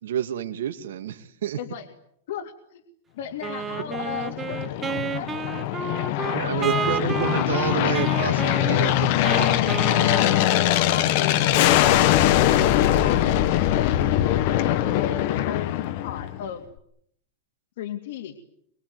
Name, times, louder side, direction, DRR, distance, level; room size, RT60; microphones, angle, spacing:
voice 1, 0.0-1.6 6.3-9.7, right 10 dB, 80° right, 8 dB, 2.8 m, -29 dB
voice 2, 2.3-2.8 3.1-6.1 6.4-6.8 10.7-15.8 16.0-16.6 17.8-18.4, left 8 dB, 60° left, 4 dB, 2.7 m, -36 dB
Wind instrument woodwind instrument, 3.4-11.1, right 6 dB, 15° right, 1.1 m, -31 dB
Aircraft, 3.8-16.5, left 13 dB, 40° left, 1.5 m, -22 dB
24.0 x 24.0 x 9.7 m, 0.72 s
supercardioid pair, 170°, 0 cm